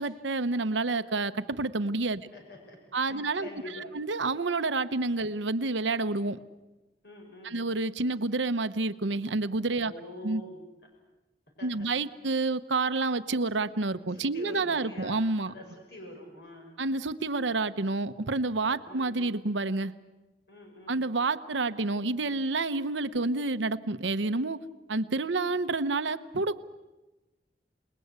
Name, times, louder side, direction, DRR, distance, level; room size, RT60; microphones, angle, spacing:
voice 1, 0.0-2.2 2.9-3.5 3.9-6.4 7.4-9.9 10.2-10.4 11.6-15.5 16.8-19.9 20.9-24.6 24.9-26.6, right 3 dB, 90° right, 12 dB, 0.9 m, -29 dB
voice 2, 2.3-3.9 7.0-7.6 9.8-10.6 11.6-11.9 14.1-15.2 15.5-16.8 18.8-19.4 20.5-21.0, left 1 dB, 65° left, 2 dB, 5.8 m, -46 dB
28.0 x 20.5 x 8.2 m, 1.1 s
head